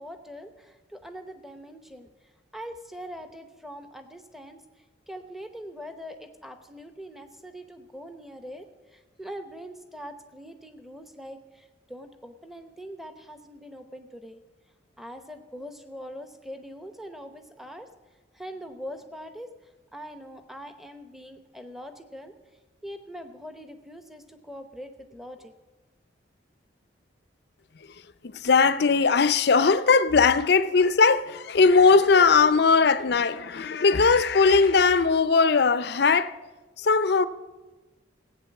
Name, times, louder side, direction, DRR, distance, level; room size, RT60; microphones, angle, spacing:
voice 1, 0.0-2.1 2.5-14.4 15.0-17.9 18.3-19.5 19.9-22.3 22.8-25.5, equal, ahead, 0.8 m, -42 dB
voice 2, 28.2-36.4 36.8-37.3, left 4 dB, 55° left, 0.5 m, -19 dB
15.5 x 8.7 x 7.0 m
head